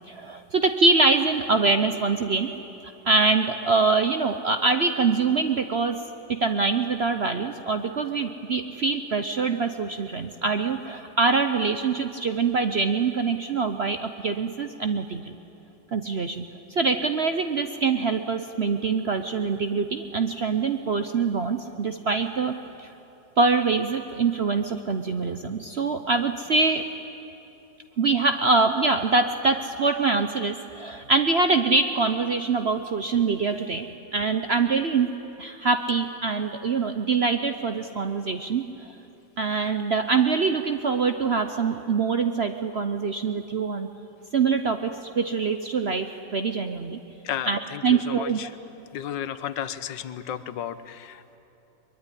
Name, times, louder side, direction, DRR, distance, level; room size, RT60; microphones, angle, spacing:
voice 1, 0.1-2.5 3.1-6.0 6.3-15.2 15.9-22.9 23.4-26.8 28.0-38.6 39.4-43.9 44.3-47.0 47.5-48.4, right 4 dB, 55° right, 8 dB, 0.7 m, -24 dB
voice 2, 47.2-48.5 48.9-51.4, left 10 dB, 75° left, 13 dB, 1.6 m, -33 dB
23.0 x 22.5 x 9.9 m, 3.0 s
omnidirectional pair, 2.0 m